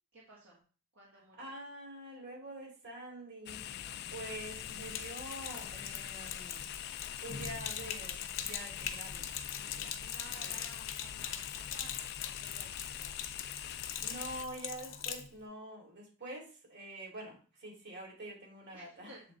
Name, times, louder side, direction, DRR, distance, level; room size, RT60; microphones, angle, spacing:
voice 1, 0.1-0.6 0.9-1.5 10.0-13.3 18.7-19.2, right 2 dB, 75° right, -5 dB, 1.6 m, -56 dB
voice 2, 1.1-3.6 4.1-6.7 7.2-10.0 10.4-10.6 14.0-19.1, right 1 dB, 55° right, -1 dB, 2.5 m, -46 dB
sound 1, 3.5-14.5, left 11 dB, 55° left, 0.3 m, -44 dB
Sink (filling or washing), 4.4-15.3, left 8 dB, 70° left, 0.8 m, -42 dB
7.7 x 3.5 x 4.0 m, 0.39 s
head